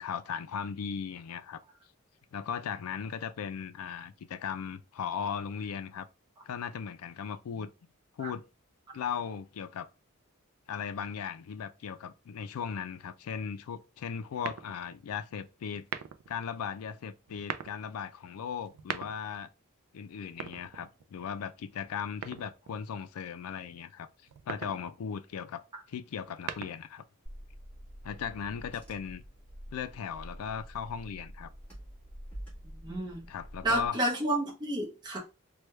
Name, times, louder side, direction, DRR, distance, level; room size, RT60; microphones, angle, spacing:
voice 1, 0.0-1.6 2.3-6.1 6.4-7.7 8.2-8.5 8.9-9.9 10.7-15.9 16.3-19.5 19.9-24.1 24.5-25.6 25.9-27.0 28.0-29.3 29.7-31.5 33.3-34.0, left 7 dB, 75° left, 0.4 m, -37 dB
sound 1, 14.4-15.0 15.8-16.4 17.3-17.8 18.6-19.4 20.3-21.2 22.2-22.8 24.3-24.8 26.1-27.0, right 8 dB, 85° right, 0.4 m, -40 dB
Car / Engine, 27.2-33.9, equal, 5° left, 1.4 m, -47 dB
voice 2, 32.8-33.3 33.6-35.2, right 1 dB, 20° right, 0.7 m, -30 dB
3.2 x 2.2 x 3.1 m
head